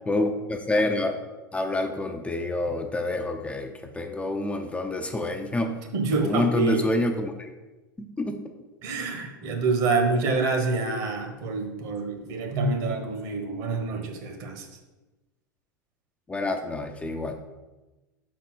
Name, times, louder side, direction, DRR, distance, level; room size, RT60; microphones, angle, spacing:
voice 1, 0.1-1.2 1.5-5.8 6.2-7.5 8.2-8.4 16.3-17.3, left 1 dB, 10° left, 4 dB, 0.6 m, -27 dB
voice 2, 5.9-6.9 8.8-14.7, right 3 dB, 50° right, 4 dB, 1.3 m, -27 dB
5.7 x 4.2 x 6.3 m, 1.1 s
figure-of-eight pair, 80°, 10 cm